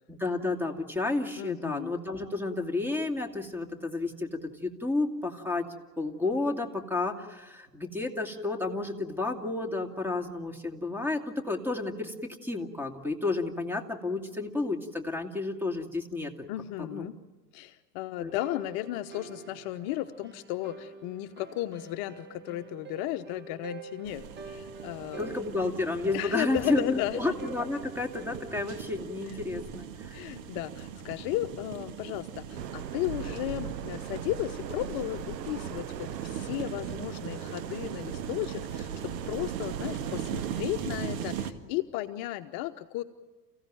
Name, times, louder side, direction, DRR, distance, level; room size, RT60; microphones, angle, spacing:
voice 1, 0.1-5.7 6.0-16.5 16.8-17.1 18.2-18.3 25.2-30.2, left 2 dB, 5° right, 5 dB, 2.6 m, -31 dB
voice 2, 1.4-1.9 16.5-17.2 17.5-25.4 26.1-27.2 29.3-29.4 30.1-43.0, left 15 dB, 45° left, 8 dB, 1.0 m, -35 dB
sound 1, 18.3-29.2, right 5 dB, 20° right, 1.7 m, -47 dB
sound 2, 24.0-41.5, right 8 dB, 55° right, 2.0 m, -39 dB
sound 3, 32.6-40.6, right 9 dB, 80° right, 1.2 m, -40 dB
29.5 x 16.0 x 9.2 m, 1.2 s
hypercardioid pair, 95°, 49 cm